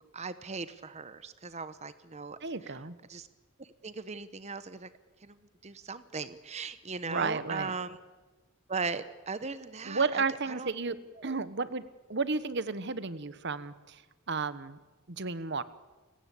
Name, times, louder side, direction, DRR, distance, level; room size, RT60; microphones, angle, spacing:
voice 1, 0.0-2.8 3.1-3.3 3.6-4.9 5.2-8.0 8.7-11.0 11.3-11.4, right 4 dB, 30° right, 13 dB, 0.9 m, -39 dB
voice 2, 2.4-3.0 7.0-7.7 9.8-11.0 11.2-11.8 12.1-14.0 14.3-14.8 15.1-15.6, right 4 dB, 55° right, 15 dB, 1.2 m, -32 dB
30.0 x 17.0 x 8.5 m, 1.2 s
head